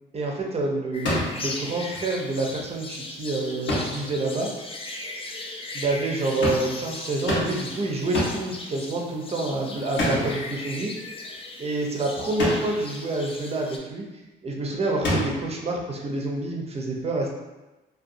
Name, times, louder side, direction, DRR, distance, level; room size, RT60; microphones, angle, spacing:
voice 1, 0.1-4.5 5.0-5.2 5.7-10.9 11.6-14.0 14.4-17.3, right 2 dB, 30° right, 0 dB, 0.6 m, -28 dB
sound 1, 0.9-13.8, left 2 dB, 30° left, 0.4 m, -38 dB
sound 2, 1.0-1.5 3.7-4.1 6.4-6.8 7.3-7.7 8.1-8.5 10.0-10.5 12.4-12.8 15.0-15.6, left 1 dB, 65° left, 0.9 m, -27 dB
2.6 x 2.3 x 2.6 m, 1.1 s
cardioid pair, 90°, 20 cm